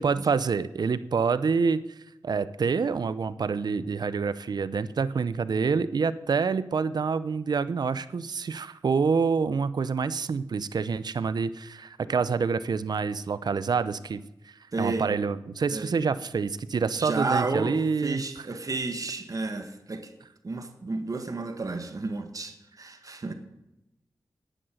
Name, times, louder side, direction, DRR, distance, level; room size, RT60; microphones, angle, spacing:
voice 1, 0.0-1.8 2.2-18.5, right 5 dB, 75° right, 15 dB, 0.7 m, -27 dB
voice 2, 14.7-15.1 15.7-15.9 17.0-17.7 18.0-20.1 20.4-23.3, right 3 dB, 55° right, 7 dB, 1.7 m, -31 dB
10.5 x 9.9 x 6.4 m, 0.92 s
cardioid pair, 50°, 7 cm